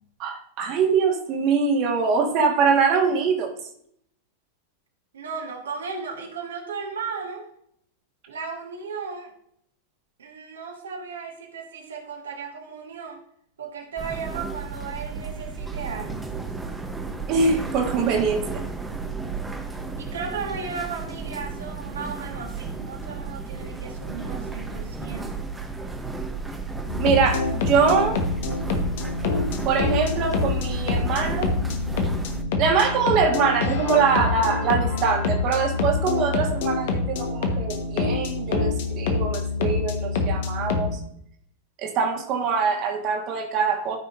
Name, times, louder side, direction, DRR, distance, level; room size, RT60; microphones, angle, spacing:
voice 1, 0.2-3.5 17.3-18.6 27.0-28.2 29.7-31.5 32.6-41.0 41.8-44.0, right 5 dB, 40° right, 2 dB, 1.6 m, -23 dB
voice 2, 5.1-7.5 8.3-9.3 10.2-13.2 13.6-16.3 20.0-25.5, right 5 dB, 65° right, 2 dB, 1.5 m, -35 dB
sound 1, 14.0-32.4, right 4 dB, 10° right, 1.0 m, -33 dB
sound 2, 26.9-41.0, left 3 dB, 55° left, 1.3 m, -26 dB
13.5 x 5.6 x 2.6 m, 0.68 s
figure-of-eight pair, 90°, 0 cm